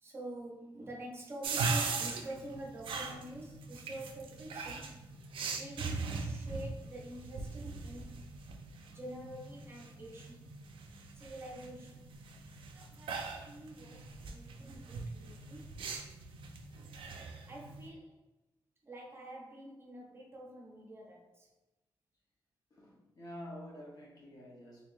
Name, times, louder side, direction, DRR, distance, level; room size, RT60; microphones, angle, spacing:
voice 1, 0.0-5.1 5.6-8.2 8.9-10.4 11.2-12.1 12.7-15.8 17.5-18.2 18.8-21.5, right 1 dB, 30° right, 0.6 m, -47 dB
sound 1, 1.4-17.9, right 4 dB, 80° right, 0.5 m, -40 dB
voice 2, 22.7-24.9, equal, 45° left, 1.2 m, -48 dB
3.6 x 3.5 x 2.6 m
wide cardioid pair, 175°, 9 cm